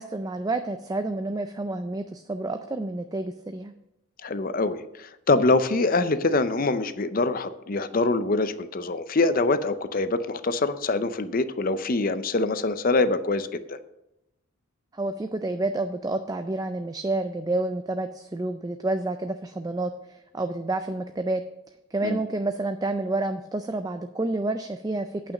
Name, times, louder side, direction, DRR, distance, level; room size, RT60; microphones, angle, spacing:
voice 1, 0.0-3.7 14.9-21.4 21.9-25.3, right 2 dB, 15° right, 8 dB, 0.3 m, -29 dB
voice 2, 4.2-13.8 22.0-22.2, left 3 dB, 40° left, 12 dB, 0.5 m, -24 dB
8.9 x 5.8 x 7.3 m, 0.89 s
head